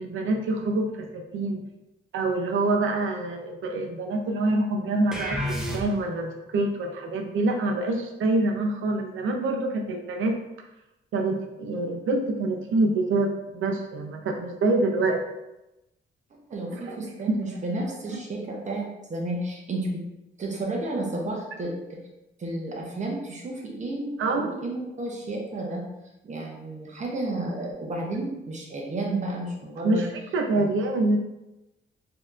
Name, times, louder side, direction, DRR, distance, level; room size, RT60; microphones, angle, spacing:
voice 1, 0.0-1.6 2.1-10.4 11.1-15.2 16.7-17.0 17.3-17.4 17.7-17.8 24.2-24.5 29.8-30.1 30.3-31.2, right 2 dB, 80° right, 3 dB, 0.6 m, -26 dB
sound 1, 5.1-6.3, equal, 5° right, 0.6 m, -30 dB
voice 2, 16.5-20.0 20.4-22.0 22.4-25.8 26.2-30.0 30.6-30.7, right 2 dB, 35° right, -1 dB, 0.8 m, -32 dB
4.1 x 2.8 x 2.4 m, 0.94 s
wide cardioid pair, 145°, 20 cm